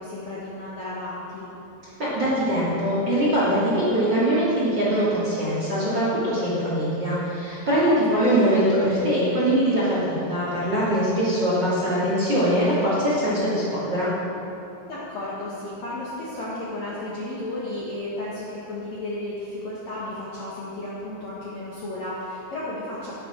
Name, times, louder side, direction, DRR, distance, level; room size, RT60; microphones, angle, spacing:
voice 1, 0.0-1.5 7.8-8.4 14.8-23.2, left 1 dB, 90° left, -8 dB, 1.5 m, -33 dB
voice 2, 2.0-14.1, equal, 30° right, -9 dB, 2.1 m, -22 dB
10.5 x 9.8 x 6.2 m, 2.9 s
omnidirectional pair, 5.9 m